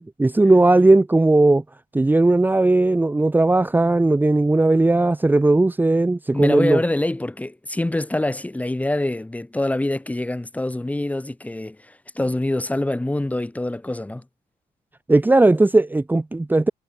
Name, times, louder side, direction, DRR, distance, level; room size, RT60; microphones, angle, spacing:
voice 1, 0.2-1.6 1.9-6.8 15.1-16.7, right 2 dB, 10° right, 1.6 m, -17 dB
voice 2, 6.3-14.2, left 1 dB, 10° left, 2.3 m, -25 dB
cardioid pair, 110°, 17 cm